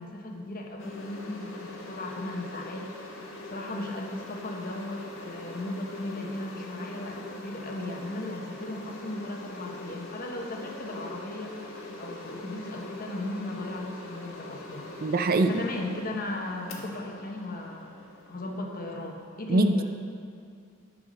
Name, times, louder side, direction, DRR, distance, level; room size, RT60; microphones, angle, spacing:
voice 1, 0.0-3.1 3.4-14.9 15.5-17.9 18.3-19.8, left 1 dB, 45° left, 1 dB, 1.2 m, -36 dB
sound 1, 0.8-19.3, left 2 dB, 70° left, 1.4 m, -43 dB
voice 2, 15.0-15.6 19.5-19.8, right 2 dB, 45° right, 8 dB, 0.5 m, -23 dB
12.5 x 4.8 x 6.4 m, 2.3 s
head